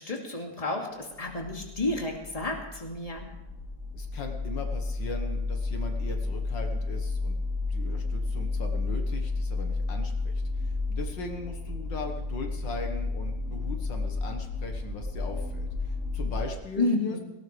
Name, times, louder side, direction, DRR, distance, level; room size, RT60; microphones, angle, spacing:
voice 1, 0.0-3.3 16.8-17.2, left 2 dB, 20° left, 0 dB, 2.5 m, -30 dB
sound 1, 1.1-16.5, left 3 dB, 60° right, 3.0 m, -32 dB
voice 2, 3.9-7.4 7.7-17.2, left 3 dB, 75° left, 4 dB, 2.3 m, -39 dB
18.5 x 18.5 x 3.4 m, 0.96 s
omnidirectional pair, 2.0 m